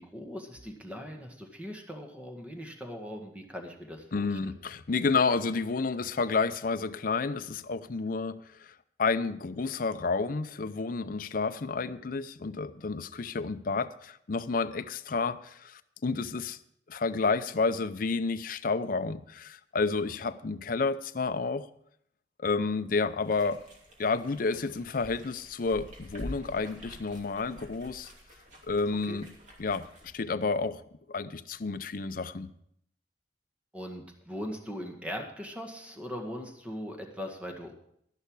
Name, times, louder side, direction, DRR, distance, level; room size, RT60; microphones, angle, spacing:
voice 1, 0.0-4.4 29.1-29.2 33.7-37.7, equal, 10° right, 2 dB, 1.7 m, -40 dB
voice 2, 4.1-8.7 9.0-16.6 16.9-21.7 22.4-23.6 24.0-28.1 28.7-29.3 29.6-30.8 31.1-32.5, left 4 dB, 50° left, 12 dB, 0.6 m, -30 dB
sound 1, 23.2-30.1, equal, 45° right, 2.8 m, -47 dB
12.0 x 11.0 x 4.7 m, 0.70 s
head